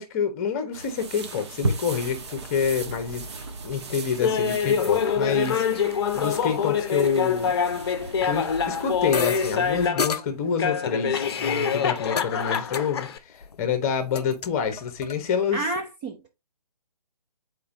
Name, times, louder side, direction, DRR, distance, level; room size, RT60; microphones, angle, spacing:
voice 1, 0.0-3.3 3.6-5.8 6.1-7.5 8.2-13.1 13.6-15.6, left 6 dB, 25° left, 1.1 m, -27 dB
sound 1, 0.7-9.9, right 3 dB, 45° right, 1.2 m, -36 dB
Laughter, 4.2-10.2 10.6-13.2, left 7 dB, 40° left, 0.7 m, -25 dB
sound 2, 9.1-9.5 10.0-10.2 11.2-12.3 12.5-12.8 13.1-13.6 13.9-15.2, left 5 dB, 90° left, 0.4 m, -31 dB
voice 2, 15.5-16.3, right 2 dB, 15° right, 0.5 m, -32 dB
8.4 x 4.5 x 2.6 m
figure-of-eight pair, 145°, 20 cm